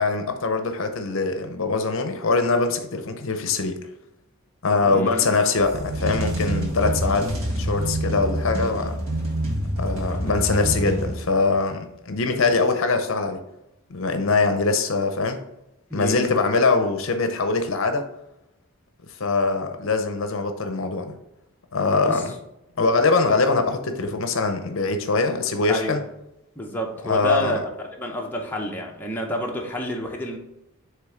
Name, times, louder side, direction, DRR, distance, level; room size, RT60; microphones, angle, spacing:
voice 1, 0.0-3.8 4.6-7.3 7.6-9.0 9.8-13.4 13.9-15.4 15.9-18.1 19.2-21.1 21.7-22.3 22.8-26.0 27.0-27.6, left 3 dB, 60° left, 6 dB, 0.6 m, -23 dB
voice 2, 4.8-5.4 9.7-10.4 15.9-16.3 21.9-22.2 25.7-26.0 26.6-30.4, equal, 10° left, -1 dB, 0.6 m, -30 dB
sound 1, 5.6-11.5, right 1 dB, 65° right, 1.6 m, -27 dB
7.4 x 3.4 x 3.7 m, 0.87 s
head